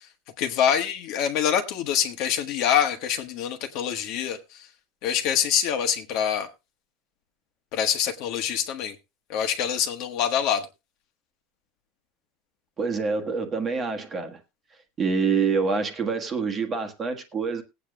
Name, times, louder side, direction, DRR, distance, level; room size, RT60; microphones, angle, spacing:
voice 1, 0.4-4.4 5.0-6.5 7.7-8.9 9.3-10.7, left 9 dB, 45° left, 1.5 m, -25 dB
voice 2, 12.8-14.4 15.0-17.6, right 5 dB, 20° right, 1.4 m, -26 dB
19.5 x 8.5 x 2.4 m
supercardioid pair, 175°, 0 cm